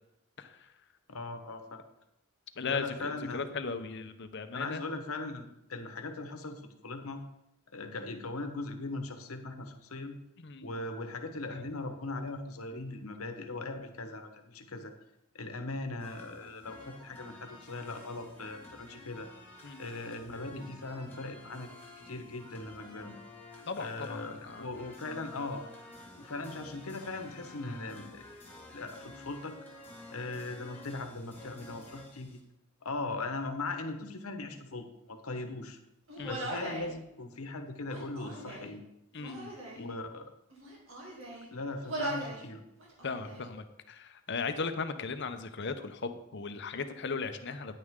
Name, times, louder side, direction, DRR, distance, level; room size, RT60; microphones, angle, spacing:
voice 1, 0.4-0.7 2.6-4.8 10.4-10.8 19.6-19.8 23.7-24.7 36.2-36.4 39.1-39.5 39.8-40.0 43.0-47.8, left 4 dB, 55° left, 9 dB, 0.7 m, -37 dB
voice 2, 1.1-1.8 2.7-3.5 4.5-7.2 7.7-10.2 10.6-14.9 15.3-19.3 19.8-21.7 22.0-23.2 23.8-25.6 26.1-28.3 28.7-29.6 30.1-32.4 32.8-35.8 36.2-38.8 39.8-40.3 41.5-42.6, left 2 dB, 85° left, 6 dB, 1.2 m, -39 dB
sound 1, 16.0-32.4, left 2 dB, 10° left, 2.0 m, -51 dB
Human voice, 36.1-36.9 37.8-38.7 39.2-39.8 40.5-41.5 41.8-42.4 42.8-43.5, right 1 dB, 65° right, 2.7 m, -39 dB
10.0 x 9.5 x 3.7 m, 0.86 s
head